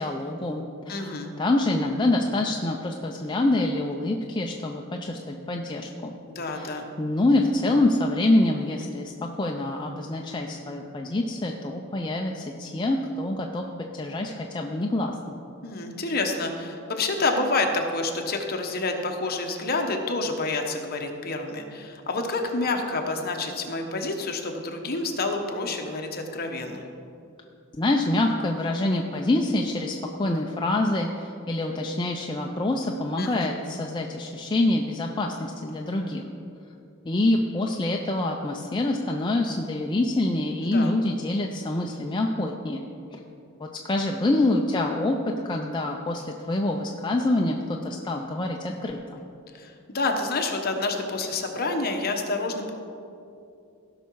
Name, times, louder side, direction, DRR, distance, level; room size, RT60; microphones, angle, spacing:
voice 1, 0.0-6.2 6.5-9.1 9.4-13.6 13.9-15.4 27.7-36.2 37.1-42.8 43.6-49.2, left 2 dB, 20° left, 1 dB, 0.5 m, -26 dB
voice 2, 0.9-1.3 6.3-6.8 15.6-26.9 33.2-33.6 40.6-40.9 49.5-52.7, left 3 dB, 45° left, 3 dB, 1.1 m, -28 dB
16.5 x 5.7 x 4.7 m, 2.6 s
head